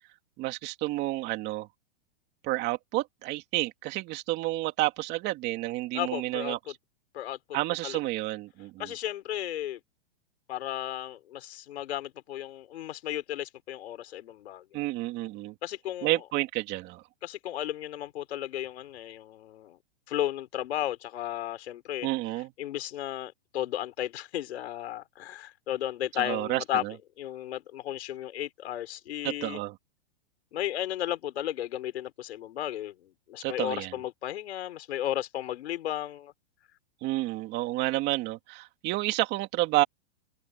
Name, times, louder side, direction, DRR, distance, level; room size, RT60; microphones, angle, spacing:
voice 1, 0.4-1.7 2.4-6.6 7.5-8.9 14.7-15.5 16.0-17.0 22.0-22.5 26.1-26.9 29.2-29.8 33.4-33.9 37.0-39.8, right 18 dB, 30° right, 2.7 m, -30 dB
voice 2, 5.9-6.7 7.1-7.4 7.8-8.0 8.8-9.8 10.5-14.6 15.6-16.2 17.2-19.8 20.1-22.1 22.6-26.8 27.2-29.6 30.5-32.9 33.3-36.3, left 12 dB, 70° left, 4.8 m, -34 dB
open air
hypercardioid pair, 155°, 34 cm